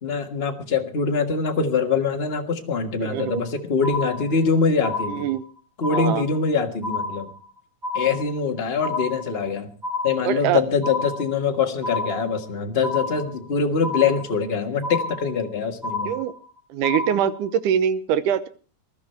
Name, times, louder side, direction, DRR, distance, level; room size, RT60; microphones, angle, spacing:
voice 1, 0.0-5.3 5.8-7.3 7.9-9.7 10.0-16.1, left 5 dB, 35° left, 4 dB, 0.9 m, -23 dB
voice 2, 3.0-3.4 5.1-5.5 5.9-6.3 10.3-10.6 16.1-16.3 16.7-18.5, right 9 dB, 90° right, 14 dB, 2.5 m, -23 dB
sound 1, 3.2-3.5 3.8-4.5 4.8-5.5 5.8-6.5 6.8-7.5 7.8-8.5 8.8-9.5 9.8-10.5 10.8-11.5 11.8-12.5 12.8-13.5 13.8-14.5 14.8-15.5 15.8-16.5 16.8-17.5, left 3 dB, 30° right, 7.5 m, -30 dB
20.5 x 12.5 x 4.5 m, 0.37 s
omnidirectional pair, 3.6 m